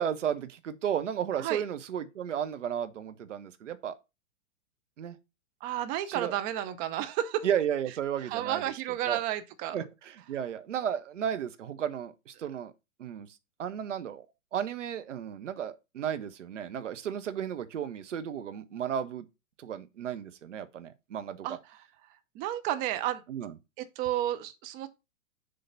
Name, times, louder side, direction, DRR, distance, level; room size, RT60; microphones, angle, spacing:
voice 1, 0.0-4.0 5.0-5.2 6.1-6.3 7.4-8.6 9.1-9.2 9.7-12.7 13.0-13.3 13.6-14.3 14.5-19.3 19.6-21.5 23.3-23.5, right 9 dB, 60° right, 1.0 m, -33 dB
voice 2, 5.6-7.5 8.3-9.8 21.4-21.6 22.3-23.2 23.8-24.9, right 12 dB, 20° right, 0.5 m, -31 dB
6.9 x 3.8 x 5.3 m
figure-of-eight pair, 110°, 40 cm